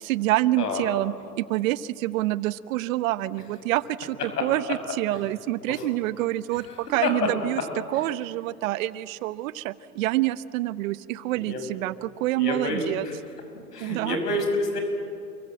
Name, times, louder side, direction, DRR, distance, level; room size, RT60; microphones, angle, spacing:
voice 1, 0.0-7.6 7.9-13.1 13.8-14.2, right 16 dB, 60° right, 16 dB, 1.0 m, -27 dB
voice 2, 6.6-7.1 11.4-11.6 12.4-13.1 13.7-14.8, left 2 dB, 85° left, 4 dB, 6.7 m, -28 dB
29.0 x 23.5 x 7.6 m, 2.5 s
hypercardioid pair, 115°, 46 cm